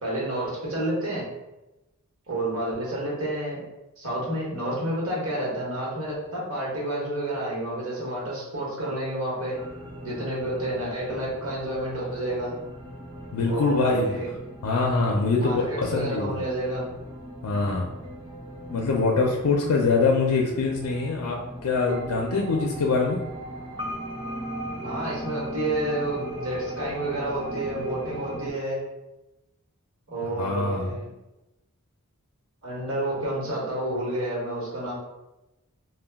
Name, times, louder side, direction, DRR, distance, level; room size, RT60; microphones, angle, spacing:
voice 1, 0.0-1.2 2.3-3.6 4.0-9.6 10.0-12.5 13.4-14.3 15.3-16.8 24.8-28.8 30.1-31.1 32.6-34.9, right 1 dB, 65° right, -5 dB, 1.1 m, -29 dB
sound 1, 9.5-28.5, equal, 20° right, 0.4 m, -38 dB
voice 2, 13.3-14.1 14.6-16.4 17.4-17.9 18.7-23.2 30.4-30.9, left 4 dB, 85° left, 0 dB, 0.4 m, -24 dB
2.2 x 2.2 x 3.4 m, 0.98 s
head